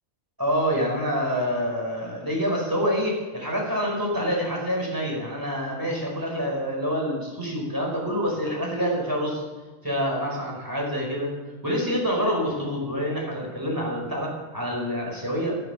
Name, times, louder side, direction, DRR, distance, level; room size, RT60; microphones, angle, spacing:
voice 1, 0.4-9.4 9.8-11.3 11.6-15.6, equal, 15° right, -2 dB, 5.2 m, -27 dB
14.0 x 13.0 x 7.1 m, 1.3 s
omnidirectional pair, 1.4 m